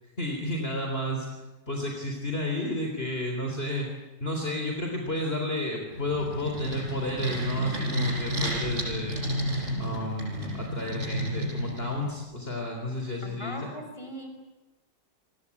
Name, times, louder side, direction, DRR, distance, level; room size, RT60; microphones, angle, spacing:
voice 1, 0.2-1.4 1.7-3.9 4.2-9.2 9.8-13.7, left 1 dB, 35° left, 1 dB, 4.0 m, -32 dB
sound 1, 5.9-12.2, equal, 40° right, 6.8 m, -31 dB
voice 2, 13.2-14.3, equal, 15° left, 4 dB, 5.4 m, -39 dB
29.0 x 20.0 x 8.6 m, 1.1 s
omnidirectional pair, 1.9 m